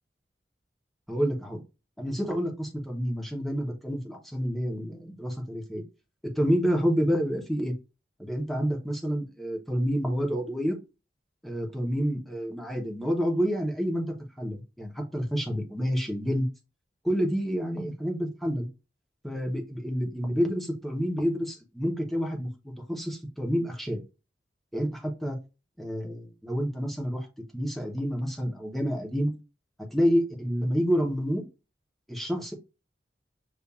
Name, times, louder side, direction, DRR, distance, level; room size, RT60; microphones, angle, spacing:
voice 1, 1.1-1.6 2.0-5.8 6.4-7.7 8.2-10.8 11.4-16.5 17.0-18.7 19.2-24.0 24.7-25.4 25.8-27.3 27.5-29.3 29.8-31.4 32.1-32.5, equal, ahead, 1 dB, 0.8 m, -28 dB
6.8 x 2.5 x 2.4 m, 0.29 s
head